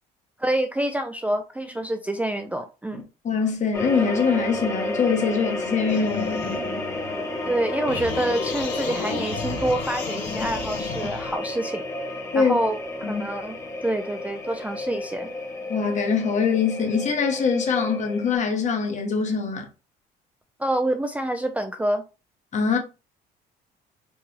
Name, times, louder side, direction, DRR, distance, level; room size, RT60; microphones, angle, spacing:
voice 1, 0.4-3.0 7.5-11.9 12.3-13.6 13.8-15.3 20.6-22.0, right 1 dB, 10° right, 0.4 m, -27 dB
voice 2, 2.9-6.4 12.3-12.6 13.0-13.2 15.7-19.7 22.5-22.8, left 5 dB, 45° left, 1.1 m, -23 dB
sound 1, 3.7-18.4, left 2 dB, 15° left, 1.0 m, -31 dB
sound 2, 5.9-7.5 7.9-11.4, left 5 dB, 85° left, 1.0 m, -33 dB
4.6 x 2.2 x 3.2 m
cardioid pair, 110°, 17 cm